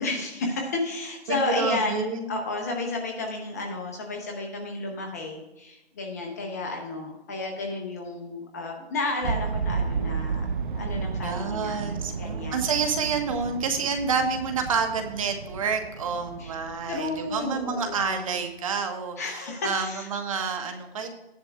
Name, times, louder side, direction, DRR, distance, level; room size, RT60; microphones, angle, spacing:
voice 1, 0.0-10.5 10.7-12.7 16.4-16.5 16.9-18.3 19.2-20.1, left 2 dB, 15° left, 1 dB, 0.7 m, -32 dB
voice 2, 1.3-2.3 11.2-21.1, right 5 dB, 30° right, 5 dB, 1.3 m, -28 dB
sound 1, 9.2-18.3, right 5 dB, 50° right, 0.5 m, -33 dB
13.5 x 10.5 x 2.3 m, 0.99 s
hypercardioid pair, 155°, 32 cm